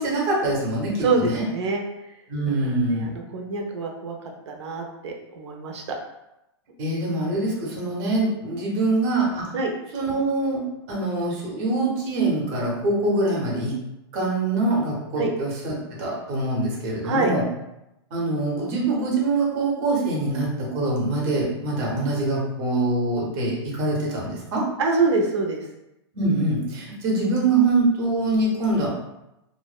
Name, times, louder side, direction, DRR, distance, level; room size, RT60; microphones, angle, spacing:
voice 1, 0.0-1.5 2.3-3.2 6.8-9.5 9.9-13.8 14.1-17.4 18.1-24.6 26.1-28.9, right 2 dB, 30° right, -3 dB, 0.7 m, -24 dB
voice 2, 1.0-1.8 2.5-4.1 4.5-6.0 9.5-9.7 15.2-15.3 17.0-17.3 24.8-25.6, right 3 dB, 90° right, 2 dB, 0.6 m, -25 dB
2.5 x 2.0 x 2.3 m, 0.89 s
supercardioid pair, 170°, 14 cm